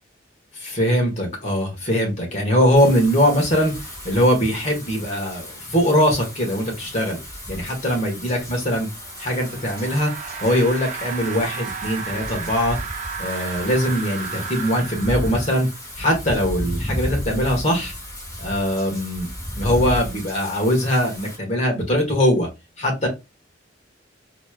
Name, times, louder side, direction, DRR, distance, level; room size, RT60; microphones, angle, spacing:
voice 1, 0.6-3.7 4.0-7.2 7.5-8.9 9.2-10.1 10.4-12.8 13.2-15.7 16.0-17.9 18.4-19.3 19.6-22.5 22.8-23.1, equal, 40° left, 1.5 m, -21 dB
Wind / Rain, 2.8-21.4, equal, 20° left, 2.1 m, -34 dB
sound 1, 8.8-15.9, right 5 dB, 40° right, 0.6 m, -34 dB
4.3 x 3.1 x 2.2 m
head